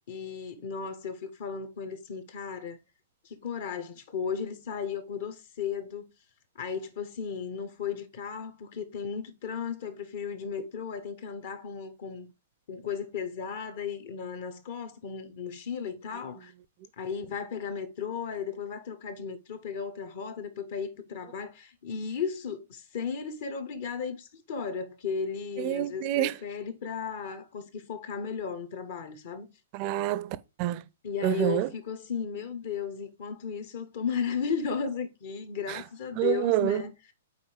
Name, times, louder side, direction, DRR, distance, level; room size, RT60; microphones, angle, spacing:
voice 1, 0.1-2.8 3.2-6.1 6.5-12.3 12.7-16.5 17.0-29.5 31.0-37.1, left 6 dB, 45° left, 1.1 m, -35 dB
voice 2, 25.6-26.3 29.7-30.8 31.2-31.7 35.7-35.8 36.2-36.8, right 14 dB, 35° right, 0.5 m, -27 dB
5.6 x 4.6 x 4.9 m
figure-of-eight pair, 110°, 0 cm